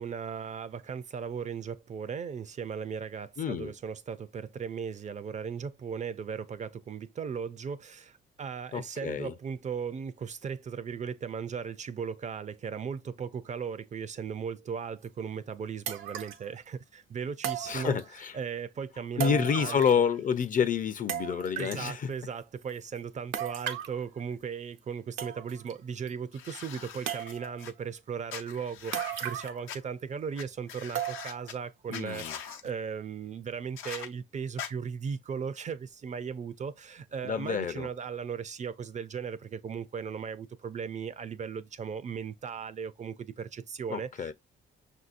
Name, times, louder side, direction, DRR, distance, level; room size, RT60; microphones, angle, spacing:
voice 1, 0.0-18.0 18.3-19.8 21.6-44.3, right 6 dB, 35° right, 0.4 m, -37 dB
voice 2, 3.4-3.7 8.7-9.3 17.7-18.3 19.2-22.1 31.9-32.4 37.2-37.9 43.9-44.3, left 7 dB, 45° left, 0.5 m, -28 dB
sound 1, 15.0-15.1 15.9-16.5 17.4-18.3 19.2-20.1 20.4-20.5 21.1-21.9 23.3-24.0 24.8-24.9 25.2-25.7 26.1-26.2 27.1-27.6 28.9-29.7 30.0-30.1 31.0-31.5 31.9-32.0 32.6-32.7, right 10 dB, 85° right, 0.6 m, -36 dB
sound 2, 26.3-27.7 28.3-29.8 30.4-30.5 30.7-31.5 31.9-32.6 33.8-34.1 34.6-34.7, left 8 dB, 85° left, 0.7 m, -42 dB
5.9 x 2.7 x 2.5 m
cardioid pair, 90°, 20 cm